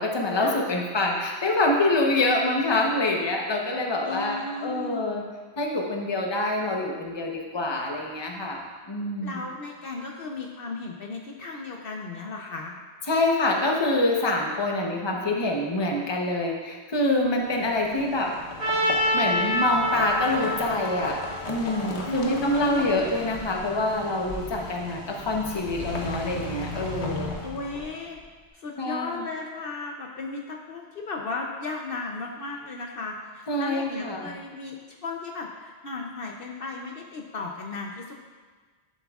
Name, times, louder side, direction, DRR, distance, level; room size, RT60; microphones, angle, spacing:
voice 1, 0.0-5.2 5.6-8.6 8.9-9.4 13.1-18.4 19.1-27.3 28.8-29.2 33.5-34.3, left 2 dB, 25° left, 0 dB, 0.9 m, -26 dB
voice 2, 4.0-5.0 9.2-12.8 22.0-23.1 27.4-28.2 28.5-34.8 35.0-38.1, left 3 dB, 60° left, 1 dB, 0.9 m, -35 dB
sound 1, 17.4-28.2, left 2 dB, 80° left, 1.2 m, -36 dB
Trumpet, 18.6-22.6, equal, 55° right, 2.0 m, -27 dB
11.0 x 7.6 x 2.4 m, 1.4 s
omnidirectional pair, 1.1 m